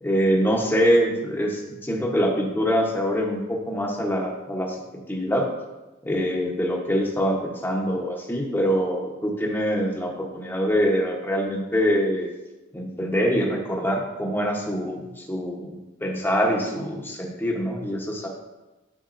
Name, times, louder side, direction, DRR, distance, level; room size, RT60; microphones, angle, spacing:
voice 1, 0.0-4.8 5.1-5.5 6.0-12.3 12.7-18.3, equal, 10° left, 0 dB, 0.9 m, -24 dB
10.0 x 5.2 x 2.6 m, 1.1 s
head